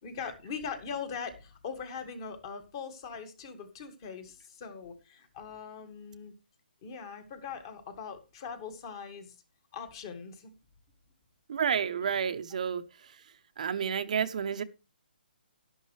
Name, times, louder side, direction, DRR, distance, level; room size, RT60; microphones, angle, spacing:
voice 1, 0.0-6.3 6.8-9.4 9.7-10.5, left 6 dB, 25° left, 1.9 m, -41 dB
voice 2, 11.5-13.2 13.6-14.6, right 7 dB, 40° right, 0.8 m, -30 dB
11.5 x 11.0 x 3.3 m
hypercardioid pair, 170°, 6 cm